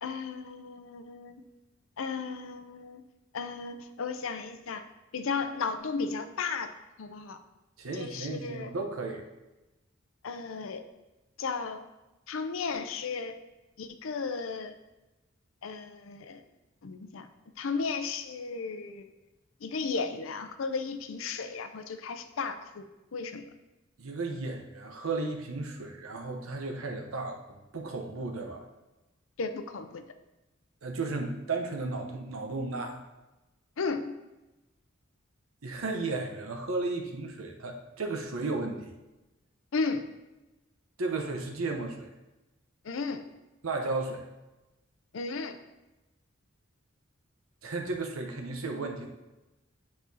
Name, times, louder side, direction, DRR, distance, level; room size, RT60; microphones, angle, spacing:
voice 1, 0.0-1.4 2.0-3.0 3.3-4.8 5.1-6.7 7.0-7.4 7.9-8.7 10.2-10.9 11.4-11.8 12.3-13.4 13.8-14.7 15.6-16.4 16.8-17.3 17.6-19.1 19.6-22.8 23.1-23.4 29.4-30.0 33.8-34.1 39.7-40.0 42.8-43.3 45.1-45.6, left 4 dB, 70° left, 9 dB, 0.5 m, -34 dB
voice 2, 7.8-9.2 24.0-28.6 30.8-33.0 35.6-38.9 41.0-42.1 43.6-44.2 47.6-49.1, right 3 dB, 85° right, 3 dB, 0.8 m, -34 dB
8.3 x 4.2 x 2.7 m, 1.0 s
head